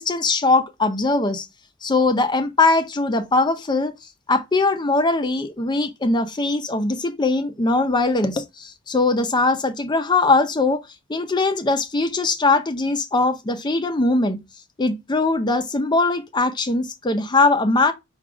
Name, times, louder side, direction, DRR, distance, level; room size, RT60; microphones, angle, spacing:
voice 1, 0.0-1.5 1.8-3.9 4.3-10.8 11.1-14.4 14.8-17.9, left 3 dB, 20° left, 0.5 m, -21 dB
4.7 x 2.3 x 4.8 m
head